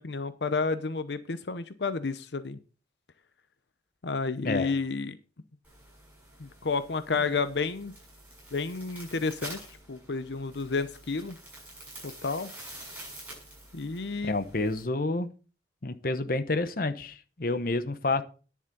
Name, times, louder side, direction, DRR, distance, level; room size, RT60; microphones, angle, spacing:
voice 1, 0.0-2.6 4.0-5.2 6.4-7.9 8.5-11.4 12.0-12.5 13.7-14.4, left 4 dB, 80° left, 0.8 m, -31 dB
sound 1, 5.6-14.8, right 1 dB, 10° right, 7.0 m, -48 dB
voice 2, 14.2-15.3 15.8-18.2, left 2 dB, 55° left, 0.9 m, -29 dB
10.5 x 7.3 x 5.3 m
head